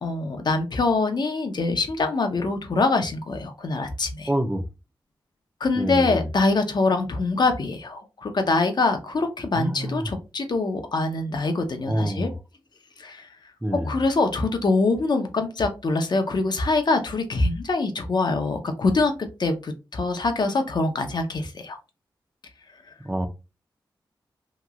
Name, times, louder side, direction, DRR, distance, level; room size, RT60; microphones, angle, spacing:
voice 1, 0.0-4.3 5.6-12.3 13.0-13.3 13.7-19.1 19.4-21.8, left 3 dB, 60° left, 0.7 m, -24 dB
voice 2, 4.3-4.6 5.8-6.3 9.6-10.1 11.9-12.3 13.6-14.0 23.0-23.3, right 1 dB, 10° right, 0.6 m, -26 dB
3.0 x 2.8 x 2.4 m
cardioid pair, 60°, 8 cm